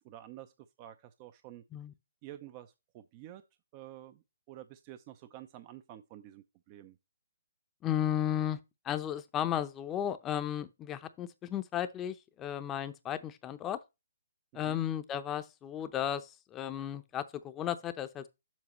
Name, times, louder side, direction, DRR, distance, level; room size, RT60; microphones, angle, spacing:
voice 1, 0.0-1.6 2.2-3.4 3.7-7.0 14.5-14.8, right 13 dB, 30° right, 0.5 m, -50 dB
voice 2, 7.8-8.6 8.8-13.8 14.5-18.3, left 10 dB, 20° left, 0.7 m, -34 dB
7.3 x 7.1 x 3.1 m
hypercardioid pair, 145°, 0 cm